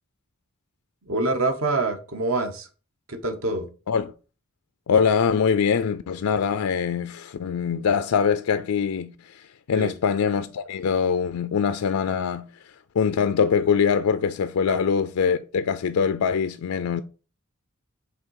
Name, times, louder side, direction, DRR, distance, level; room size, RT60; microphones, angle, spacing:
voice 1, 1.1-2.7 3.1-3.7 9.7-9.9 14.7-14.8, right 2 dB, 70° right, 1.1 m, -26 dB
voice 2, 4.9-12.5 12.9-17.0, left 6 dB, 85° left, 0.4 m, -23 dB
5.5 x 3.7 x 4.7 m
head